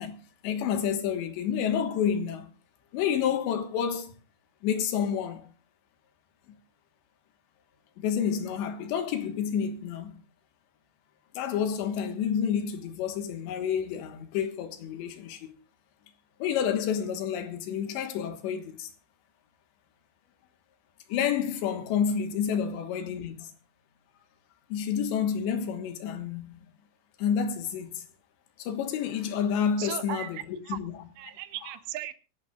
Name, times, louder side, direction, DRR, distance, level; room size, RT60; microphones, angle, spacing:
voice 1, 0.0-2.5 2.9-4.1 4.6-5.5 8.0-10.2 11.4-15.5 16.4-18.9 21.1-23.5 24.7-26.7 27.2-28.0 28.6-31.0 31.6-31.7, left 8 dB, 75° left, 3.6 m, -29 dB
voice 2, 29.8-30.8 31.2-32.1, right 13 dB, 80° right, 3.0 m, -37 dB
24.5 x 11.5 x 2.4 m
omnidirectional pair, 5.3 m